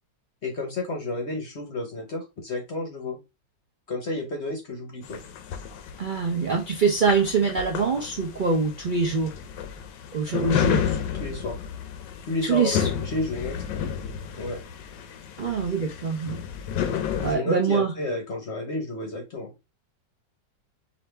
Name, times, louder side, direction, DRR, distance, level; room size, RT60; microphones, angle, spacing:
voice 1, 0.4-3.2 3.9-5.2 10.3-11.6 12.3-13.6 14.4-14.6 17.2-19.5, left 2 dB, 50° left, 0.9 m, -31 dB
sound 1, 5.0-17.4, left 8 dB, 85° left, 1.4 m, -32 dB
voice 2, 6.0-9.3 10.1-10.8 12.5-12.9 15.4-16.4 17.2-17.9, right 5 dB, 60° right, 0.5 m, -24 dB
4.9 x 2.7 x 3.3 m
omnidirectional pair, 1.9 m